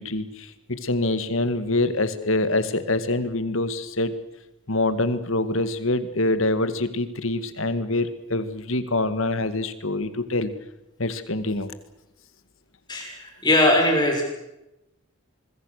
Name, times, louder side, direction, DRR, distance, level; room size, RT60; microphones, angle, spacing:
voice 1, 0.0-4.1 4.7-10.5 11.0-11.7, left 2 dB, 65° left, 11 dB, 1.9 m, -25 dB
voice 2, 12.9-14.2, left 1 dB, 20° left, 1 dB, 6.4 m, -20 dB
25.5 x 23.0 x 6.6 m, 0.92 s
head